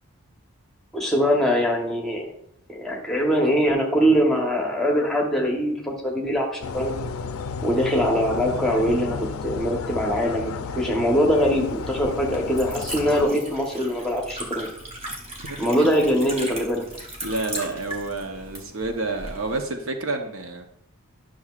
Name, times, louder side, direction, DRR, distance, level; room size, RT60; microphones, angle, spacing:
voice 1, 0.9-2.3 2.7-7.0 7.6-14.7 15.6-16.8, equal, ahead, -1 dB, 1.0 m, -22 dB
sound 1, 6.6-13.3, left 5 dB, 70° left, 0.4 m, -32 dB
Liquid, 11.1-19.6, right 1 dB, 25° right, 1.1 m, -38 dB
voice 2, 15.5-15.9 17.2-20.6, right 2 dB, 65° right, 5 dB, 0.8 m, -29 dB
10.0 x 6.2 x 2.4 m, 0.70 s
head